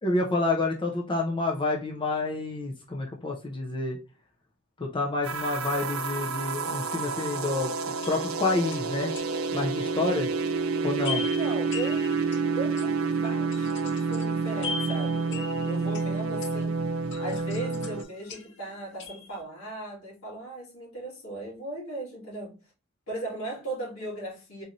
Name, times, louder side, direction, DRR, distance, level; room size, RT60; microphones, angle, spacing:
voice 1, 0.0-4.0 4.8-7.7 8.1-9.1 9.5-10.3 10.8-11.2, left 2 dB, 25° left, 0.5 m, -28 dB
sound 1, 5.2-18.0, right 4 dB, 90° right, 0.5 m, -29 dB
sound 2, 8.0-9.6 11.0-16.7 17.1-18.7 19.0-19.4, left 4 dB, 60° left, 0.7 m, -40 dB
voice 2, 11.2-12.0 12.5-16.9 17.2-22.6 23.1-24.6, right 2 dB, 80° left, 2.2 m, -37 dB
3.9 x 3.1 x 2.6 m
head